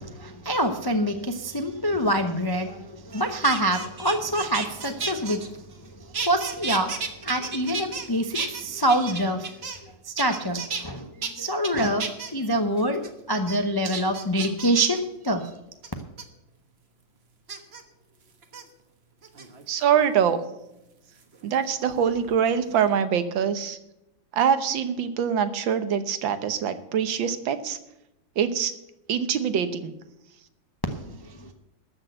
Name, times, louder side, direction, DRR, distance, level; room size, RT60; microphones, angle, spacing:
voice 1, 0.0-5.4 6.3-6.9 7.2-9.4 10.1-11.1 11.4-12.1 12.3-13.0 13.3-15.0 15.2-15.4, right 1 dB, 35° left, 6 dB, 0.3 m, -25 dB
sound 1, 3.1-5.9 6.1-8.1 8.3-9.9 10.2-10.8 11.2-11.3 11.6-12.3 12.8-13.1 13.5-13.6 13.9-15.0 15.8-16.2 17.5-17.8 18.4-18.6 19.2-19.8 21.2-22.4 22.7-23.1, right 5 dB, 40° right, 1.3 m, -33 dB
voice 2, 19.7-20.4 21.4-23.8 24.3-27.8 28.4-28.7 29.1-29.8, right 8 dB, 90° right, 10 dB, 1.7 m, -24 dB
13.5 x 6.4 x 7.8 m, 0.88 s
omnidirectional pair, 2.0 m